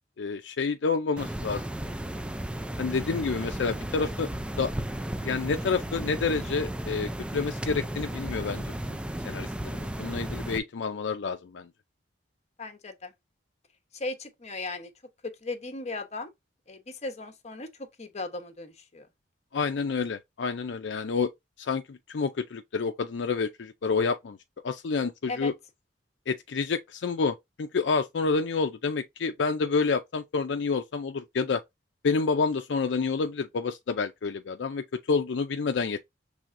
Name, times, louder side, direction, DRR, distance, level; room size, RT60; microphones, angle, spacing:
voice 1, 0.2-1.6 2.8-4.3 4.6-4.7 5.2-8.7 9.2-11.7 19.5-21.3 21.6-24.4 24.6-25.5 26.3-31.6 32.0-36.0, left 4 dB, 75° left, 0.5 m, -29 dB
sound 1, 1.2-10.6, right 1 dB, 5° right, 0.4 m, -34 dB
voice 2, 12.6-13.1 13.9-14.9 15.2-16.3 16.7-19.1 25.3-25.5, left 2 dB, 40° left, 0.9 m, -37 dB
6.2 x 3.3 x 2.5 m
head